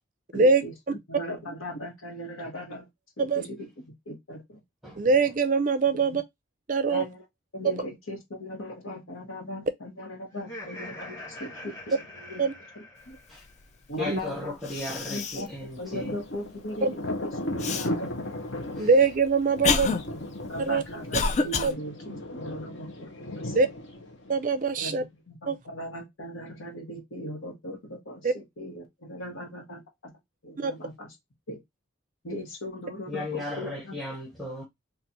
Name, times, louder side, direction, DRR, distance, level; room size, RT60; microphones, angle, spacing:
voice 1, 0.3-2.9 3.2-4.6 6.1-6.2 6.9-7.2 7.5-12.4 12.7-13.2 13.9-14.5 15.0-18.8 19.7-23.1 23.3-23.7 24.8-30.1 30.4-31.1 31.5-31.6 32.2-34.0, equal, 85° left, 1.2 m, -39 dB
voice 2, 5.0-6.2 6.7-7.1 7.6-7.7 12.4-12.5 14.1-14.2 16.8-16.9 18.8-19.9 20.6-20.8 21.6-21.8 23.5-23.7 24.3-25.0 25.5-25.6 28.2-28.3 30.6-30.7, right 4 dB, 40° right, 0.4 m, -23 dB
Laughter, 10.3-13.6, left 1 dB, 15° left, 2.0 m, -43 dB
voice 3, 14.0-16.1 18.8-18.9 33.1-34.6, left 1 dB, ahead, 0.9 m, -35 dB
Cough, 14.2-14.3 14.6-15.5 16.0-16.1 17.6-17.9 18.7-21.7, left 4 dB, 35° left, 0.3 m, -28 dB
Thunder, 15.4-24.9, left 1 dB, 65° left, 0.9 m, -36 dB
3.9 x 2.5 x 2.8 m
head